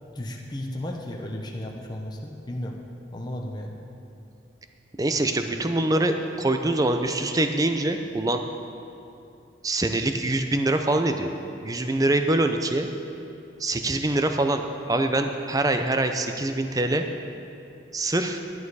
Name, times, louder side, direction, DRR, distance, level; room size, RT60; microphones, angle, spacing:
voice 1, 0.1-2.8 3.1-3.8, left 1 dB, 20° left, 0 dB, 0.7 m, -34 dB
voice 2, 5.0-8.4 9.6-11.3 11.6-12.9 13.6-17.1 17.9-18.4, right 2 dB, 20° right, 6 dB, 0.5 m, -24 dB
11.0 x 10.5 x 4.8 m, 2.7 s
head